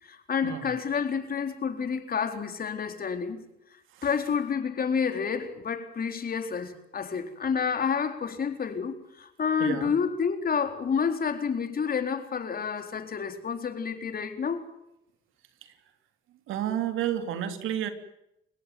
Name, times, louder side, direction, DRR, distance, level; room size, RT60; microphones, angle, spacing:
voice 1, 0.0-3.4 4.0-14.6, left 6 dB, 50° left, 7 dB, 4.1 m, -29 dB
voice 2, 9.6-9.9 15.6-15.7 16.5-17.9, right 10 dB, 90° right, 8 dB, 3.2 m, -31 dB
29.5 x 17.0 x 9.4 m, 0.83 s
cardioid pair, 90°, 20 cm